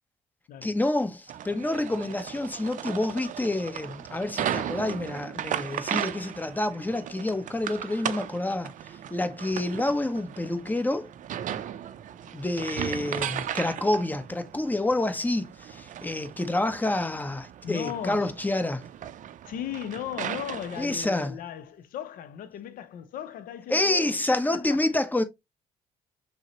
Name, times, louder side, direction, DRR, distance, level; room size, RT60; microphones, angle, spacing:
voice 1, 0.6-8.7 9.1-11.1 12.3-18.8 20.8-21.4 23.7-25.2, left 2 dB, 10° left, 0.9 m, -28 dB
sound 1, 1.3-21.1, right 10 dB, 50° right, 0.5 m, -36 dB
voice 2, 17.6-18.3 19.4-24.2 24.5-24.9, left 10 dB, 55° left, 0.6 m, -37 dB
6.2 x 2.1 x 2.9 m
hypercardioid pair, 50°, 17 cm